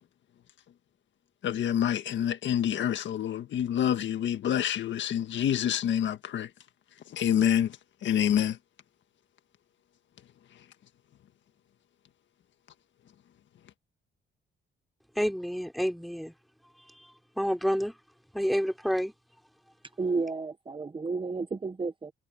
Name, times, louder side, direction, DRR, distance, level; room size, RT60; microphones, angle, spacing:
voice 1, 1.4-6.5 7.1-8.6 10.5-10.6, left 10 dB, 70° left, 1.7 m, -27 dB
voice 2, 15.2-16.3 17.4-17.9 18.3-19.1, equal, ahead, 3.8 m, -28 dB
voice 3, 20.0-22.1, right 4 dB, 25° right, 1.1 m, -32 dB
cardioid pair, 90°, 20 cm